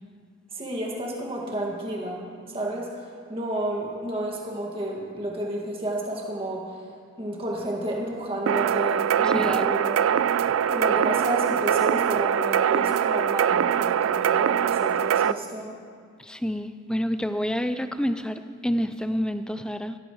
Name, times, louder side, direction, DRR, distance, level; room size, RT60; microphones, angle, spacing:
voice 1, 0.5-2.9 3.3-6.8 7.2-10.1 10.6-15.7, right 1 dB, 30° right, -2 dB, 1.9 m, -31 dB
sound 1, 8.5-15.3, right 9 dB, 90° right, 0.3 m, -23 dB
voice 2, 9.2-9.7 16.2-20.0, equal, 5° left, 10 dB, 0.4 m, -28 dB
16.0 x 14.5 x 3.1 m, 2.1 s
head